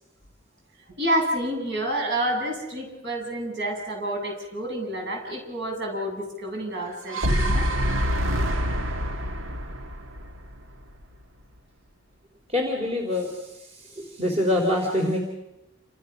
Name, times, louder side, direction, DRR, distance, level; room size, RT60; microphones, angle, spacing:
voice 1, 1.0-7.7, right 1 dB, 60° right, 1 dB, 7.9 m, -28 dB
sound 1, 6.9-11.0, equal, 90° right, 1.8 m, -26 dB
voice 2, 12.5-15.2, left 1 dB, 35° right, 0 dB, 3.8 m, -25 dB
30.0 x 27.0 x 6.1 m, 0.96 s
head